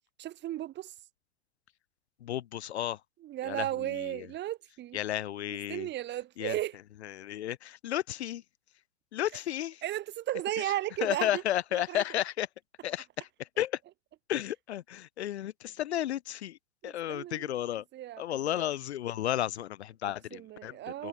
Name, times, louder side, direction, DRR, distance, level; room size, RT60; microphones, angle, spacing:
voice 1, 0.2-0.9 3.2-5.0 5.7-6.8 9.8-11.4 11.7-12.0 16.8-17.5 17.9-18.7 20.0-21.1, right 14 dB, 30° right, 3.0 m, -35 dB
voice 2, 2.2-3.0 3.4-4.3 4.9-5.9 6.4-6.6 7.0-8.4 9.1-9.8 10.6-10.7 11.0-12.5 12.8-13.8 14.3-16.6 16.8-17.8 18.2-20.8 21.0-21.1, left 12 dB, 70° left, 1.0 m, -33 dB
hypercardioid pair, 105°, 34 cm